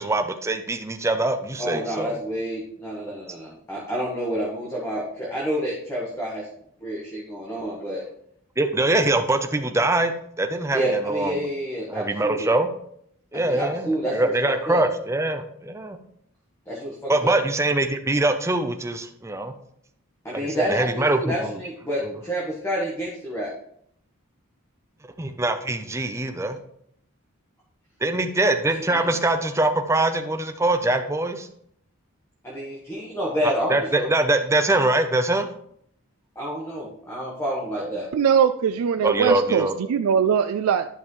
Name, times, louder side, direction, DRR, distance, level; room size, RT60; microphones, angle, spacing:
voice 1, 0.0-2.2 3.1-3.2 8.6-11.3 11.9-12.7 13.3-16.0 17.1-19.5 20.3-21.6 22.0-22.1 25.2-26.6 28.0-31.5 33.4-35.5 37.8-38.0 39.0-39.7, right 2 dB, 15° right, 6 dB, 0.5 m, -23 dB
voice 2, 1.6-6.5 6.8-8.0 10.7-12.5 13.3-14.8 16.7-17.4 20.2-23.5 28.9-29.2 32.4-34.1 36.3-38.1, equal, 10° left, -5 dB, 1.3 m, -29 dB
voice 3, 38.1-40.9, right 7 dB, 80° right, 9 dB, 0.3 m, -21 dB
11.0 x 5.3 x 3.1 m, 0.69 s
head